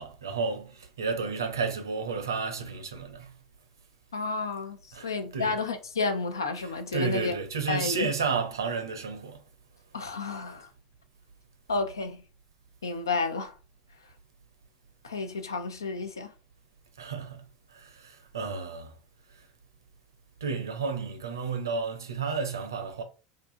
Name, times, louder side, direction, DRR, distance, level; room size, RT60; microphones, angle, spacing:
voice 1, 0.0-3.3 4.9-5.6 6.9-9.4 17.0-17.4 17.7-18.9 20.4-23.0, right 4 dB, 85° right, 0.7 m, -32 dB
voice 2, 4.1-4.8 5.0-7.3 7.7-8.1 9.9-10.7 11.7-12.2 12.8-13.5 15.0-16.3, left 4 dB, 90° left, 0.5 m, -31 dB
2.6 x 2.5 x 3.7 m
hypercardioid pair, 80°, 2 cm